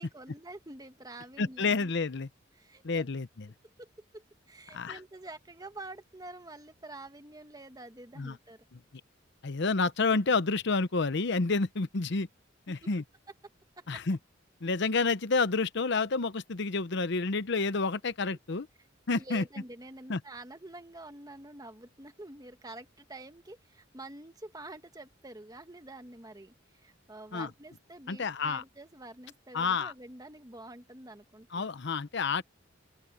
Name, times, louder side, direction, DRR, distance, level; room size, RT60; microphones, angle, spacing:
voice 1, 0.0-1.9 2.5-3.1 3.6-8.6 12.7-12.9 13.8-14.0 19.1-31.7, right 2 dB, 20° right, 1.4 m, -47 dB
voice 2, 1.4-2.3 2.8-3.3 4.7-5.0 8.2-8.3 9.4-12.3 12.7-13.0 13.9-14.2 14.6-18.7 19.1-19.4 20.1-20.2 27.3-27.5 28.1-28.6 29.5-29.9 31.5-32.4, left 4 dB, 60° left, 0.8 m, -29 dB
open air
head